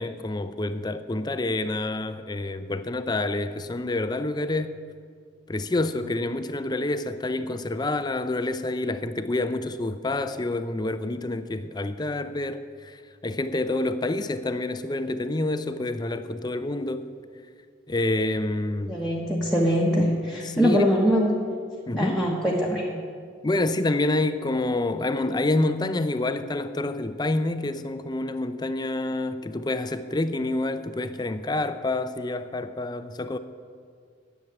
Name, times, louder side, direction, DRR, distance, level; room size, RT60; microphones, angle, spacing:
voice 1, 0.0-4.8 5.5-17.1 17.9-19.0 20.4-20.8 21.9-22.3 23.4-33.4, left 2 dB, 20° left, 11 dB, 0.5 m, -28 dB
voice 2, 18.9-21.3 22.0-22.8, equal, ahead, -4 dB, 1.2 m, -23 dB
10.5 x 7.3 x 9.3 m, 2.1 s
head